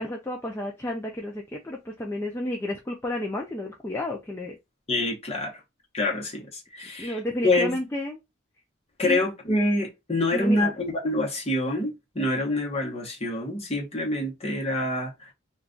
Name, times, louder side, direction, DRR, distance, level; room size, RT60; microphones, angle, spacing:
voice 1, 0.0-4.6 7.0-8.2 9.0-9.2 10.3-10.7, left 1 dB, 10° left, 0.3 m, -31 dB
voice 2, 4.9-5.6 5.9-7.8 9.0-15.3, left 1 dB, 30° left, 0.9 m, -26 dB
2.3 x 2.3 x 3.7 m
head